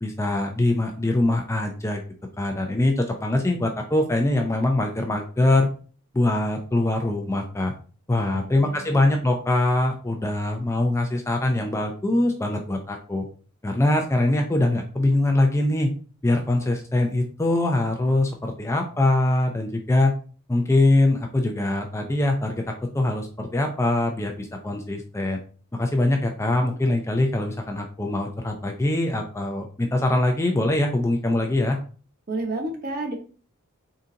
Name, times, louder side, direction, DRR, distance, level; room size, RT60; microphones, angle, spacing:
voice 1, 0.0-2.0 2.4-5.7 6.1-7.7 8.1-13.3 13.6-15.9 16.2-20.1 20.5-25.4 25.7-31.8, left 2 dB, 15° left, 3 dB, 0.4 m, -23 dB
voice 2, 8.1-9.0 32.3-33.2, right 2 dB, 45° right, 2 dB, 1.0 m, -31 dB
3.8 x 3.7 x 2.8 m, 0.39 s
head